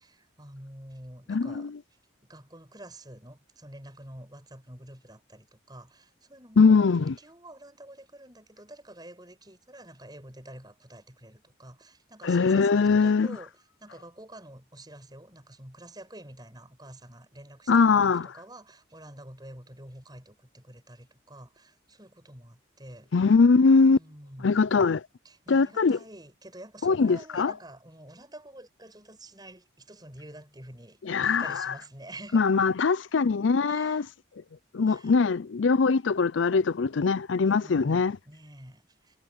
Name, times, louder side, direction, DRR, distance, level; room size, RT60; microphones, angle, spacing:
voice 1, 0.0-1.7 2.2-6.8 7.2-23.1 23.9-24.8 25.2-32.5 32.8-32.9 33.6-34.1 34.8-35.1 37.5-39.2, right 1 dB, 20° right, 7.9 m, -48 dB
voice 2, 1.3-1.8 6.6-7.2 12.2-13.3 17.7-18.3 23.1-24.0 24.4-25.0 25.5-26.0 26.8-27.5 31.0-31.7 32.3-34.0 34.7-38.1, left 4 dB, 70° left, 0.5 m, -22 dB
head